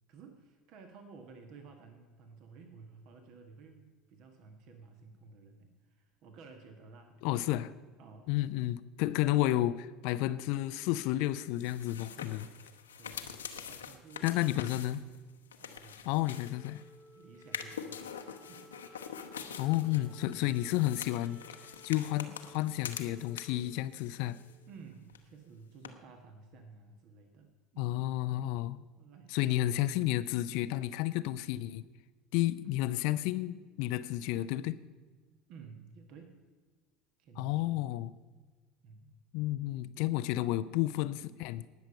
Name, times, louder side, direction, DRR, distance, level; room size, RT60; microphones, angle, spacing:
voice 1, 0.1-7.2 7.6-8.3 9.0-9.7 12.1-12.6 12.9-14.9 15.6-16.1 16.3-16.5 17.1-18.1 18.5-18.7 19.9-20.7 24.7-28.0 29.0-29.7 32.7-32.8 35.5-36.4 37.2-37.9 38.8-39.1, right 4 dB, 50° right, 6 dB, 1.3 m, -54 dB
voice 2, 7.2-7.7 8.3-9.7 10.0-12.4 14.2-15.0 16.1-16.8 19.6-21.4 21.8-24.4 27.8-28.8 29.3-31.9 32.3-34.8 37.4-38.1 39.3-41.7, left 15 dB, 55° left, 15 dB, 0.4 m, -31 dB
sound 1, 11.4-16.9 17.4-23.7 24.0-24.8 25.1-25.2 25.8-25.9, left 7 dB, 75° left, 0.9 m, -45 dB
Wind instrument woodwind instrument, 16.2-24.8, left 3 dB, 30° right, 3.5 m, -58 dB
19.0 x 7.0 x 5.3 m, 1.4 s
figure-of-eight pair, 70°, 0 cm